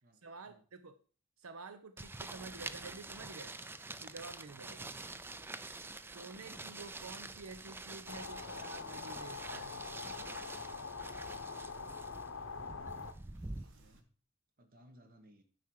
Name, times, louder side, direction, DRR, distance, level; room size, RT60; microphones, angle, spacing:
voice 1, 0.2-0.9 1.4-3.5 4.0-5.0 6.0-9.9, right 3 dB, 85° right, 10 dB, 0.7 m, -50 dB
sound 1, 2.0-13.6, right 2 dB, 10° right, 0.3 m, -47 dB
voice 2, 4.7-5.1 12.5-13.1 13.5-14.1 14.6-15.4, equal, 45° right, 6 dB, 1.4 m, -62 dB
Walk footsteps, 5.0-14.0, right 2 dB, 60° right, 1.2 m, -66 dB
sound 2, 8.1-13.1, left 4 dB, 65° left, 0.7 m, -44 dB
9.6 x 6.0 x 4.7 m, 0.40 s
head